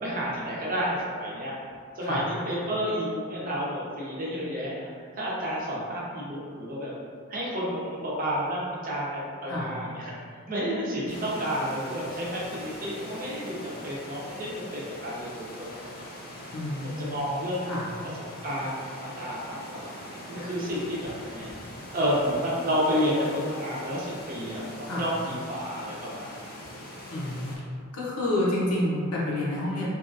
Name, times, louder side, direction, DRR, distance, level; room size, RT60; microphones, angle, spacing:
voice 1, 0.0-1.5 1.9-4.9 5.1-6.9 7.3-10.1 10.5-16.1 17.0-17.7 18.4-19.9 20.3-21.5 21.9-26.4, equal, 40° right, -6 dB, 0.6 m, -30 dB
sound 1, 11.1-27.6, left 1 dB, 45° left, 0.5 m, -42 dB
voice 2, 16.5-17.3 17.7-17.9 24.8-25.1 27.1-27.5 27.9-29.9, left 1 dB, 85° left, -5 dB, 0.7 m, -29 dB
2.7 x 2.4 x 2.6 m, 2.1 s
head